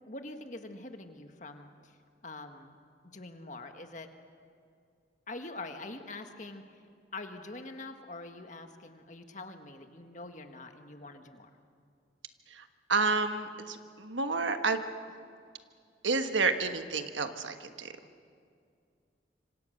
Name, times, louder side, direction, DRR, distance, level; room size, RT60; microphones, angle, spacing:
voice 1, 0.1-2.0 2.2-2.7 3.0-4.1 5.3-6.6 7.1-11.6, left 2 dB, 40° left, 6 dB, 1.6 m, -44 dB
voice 2, 12.5-14.8 16.0-17.9, right 4 dB, 90° right, 7 dB, 1.4 m, -30 dB
26.5 x 25.5 x 6.6 m, 2.3 s
head